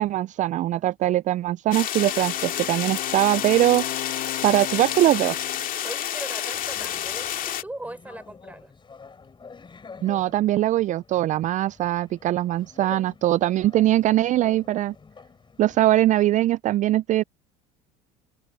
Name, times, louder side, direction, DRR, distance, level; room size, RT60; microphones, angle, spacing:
voice 1, 0.0-3.8 4.4-5.4 10.0-14.9 15.6-17.2, right 14 dB, 45° right, 0.4 m, -21 dB
sound 1, 1.7-7.6, left 11 dB, 50° left, 2.4 m, -29 dB
Wind instrument woodwind instrument, 2.0-5.8, left 19 dB, 65° left, 1.6 m, -37 dB
voice 2, 4.5-4.9 5.8-8.7, right 1 dB, 10° right, 4.2 m, -39 dB
sound 2, 6.5-16.1, left 5 dB, 25° left, 4.4 m, -47 dB
hypercardioid pair, 75°, 18 cm